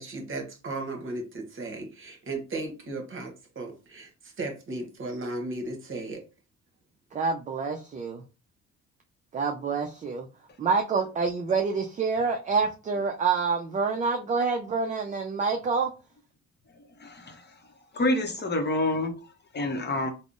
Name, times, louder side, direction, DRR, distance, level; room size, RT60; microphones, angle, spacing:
voice 1, 0.0-6.2, right 2 dB, 45° right, 0.9 m, -36 dB
voice 2, 7.1-8.2 9.3-10.3 10.6-15.9, right 5 dB, 25° right, 0.3 m, -27 dB
voice 3, 17.0-17.4 17.9-19.1 19.5-20.1, left 1 dB, 35° left, 0.7 m, -27 dB
3.5 x 2.0 x 2.5 m
cardioid pair, 90°, 30 cm